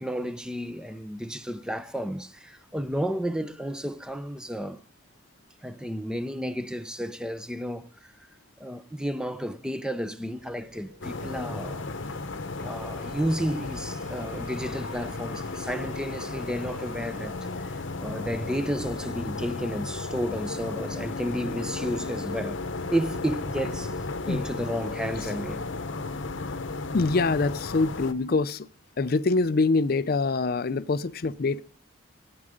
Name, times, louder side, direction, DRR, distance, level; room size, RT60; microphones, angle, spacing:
voice 1, 0.0-4.8 5.6-8.1 8.6-11.9 12.6-22.6 22.9-25.6, equal, 5° right, 0.6 m, -32 dB
sound 1, 10.3-28.5, right 1 dB, 60° right, 4.8 m, -54 dB
sound 2, 11.0-28.1, left 3 dB, 65° left, 0.9 m, -34 dB
voice 2, 26.9-28.7 29.0-31.6, left 3 dB, 45° left, 0.5 m, -24 dB
14.5 x 8.8 x 5.0 m
head